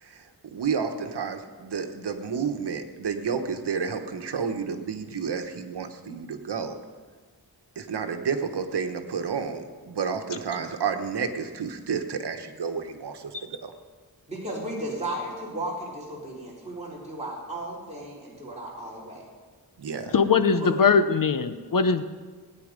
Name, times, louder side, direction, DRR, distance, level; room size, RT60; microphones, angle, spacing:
voice 1, 0.5-6.7 7.8-13.7 19.8-20.1, right 6 dB, 85° right, 6 dB, 1.3 m, -30 dB
voice 2, 14.3-19.2 20.6-20.9, right 1 dB, 15° right, -6 dB, 3.9 m, -35 dB
voice 3, 20.1-22.0, left 5 dB, 55° left, 11 dB, 1.0 m, -21 dB
18.5 x 9.3 x 5.3 m, 1.4 s
wide cardioid pair, 85°, 40 cm